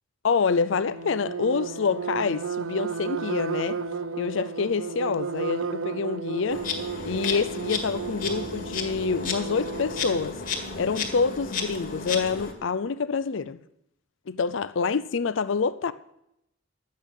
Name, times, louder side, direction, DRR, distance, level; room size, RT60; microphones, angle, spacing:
voice 1, 0.2-3.8 4.2-6.6 7.0-10.4 10.8-13.6 14.3-15.9, left 5 dB, 75° left, 0.5 m, -27 dB
sound 1, 0.7-10.3, right 5 dB, 90° right, 0.7 m, -33 dB
Insect, 6.5-12.5, left 4 dB, 40° left, 1.9 m, -33 dB
12.0 x 8.5 x 7.0 m
head